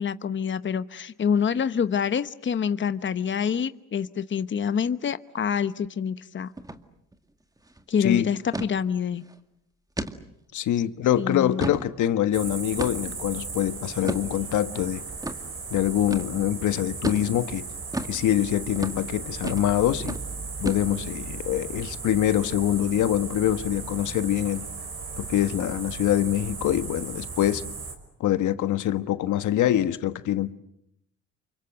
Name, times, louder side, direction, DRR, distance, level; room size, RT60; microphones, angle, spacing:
voice 1, 0.0-6.5 7.9-9.2 11.2-11.7, left 7 dB, 40° left, 1.0 m, -26 dB
sound 1, 6.6-6.8 7.1-7.2 7.6-7.8 8.5-8.7 9.2-9.3 10.0-10.2 10.7-10.8 11.3-11.9 12.8-13.2 14.0-14.3 15.2-15.4 16.1-16.3 17.0-17.3 17.9-18.2 18.8-19.0 19.4-19.7 20.0-20.2 20.7-21.1, right 1 dB, 10° right, 2.1 m, -32 dB
voice 2, 10.5-15.0 15.7-17.6 18.1-20.2 20.6-24.6 25.2-27.6 28.2-30.5, left 12 dB, 75° left, 1.4 m, -24 dB
sound 2, 12.3-27.9, right 4 dB, 50° right, 5.8 m, -36 dB
29.0 x 24.5 x 7.9 m
cardioid pair, 90°, 30 cm